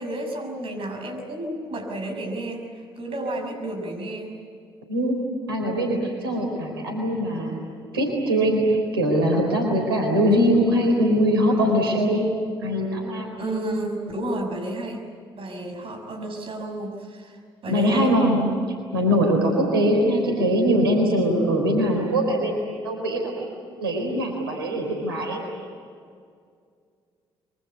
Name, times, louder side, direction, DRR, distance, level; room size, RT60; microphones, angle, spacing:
voice 1, 0.0-2.7 3.0-4.3 13.4-15.0 15.4-17.4 17.6-18.1, right 1 dB, 50° right, 4 dB, 6.5 m, -31 dB
voice 2, 5.5-7.6 7.9-13.3 17.7-18.5 18.9-25.4, equal, 85° right, 2 dB, 4.0 m, -22 dB
25.0 x 24.5 x 8.3 m, 2.2 s
figure-of-eight pair, 45°, 12 cm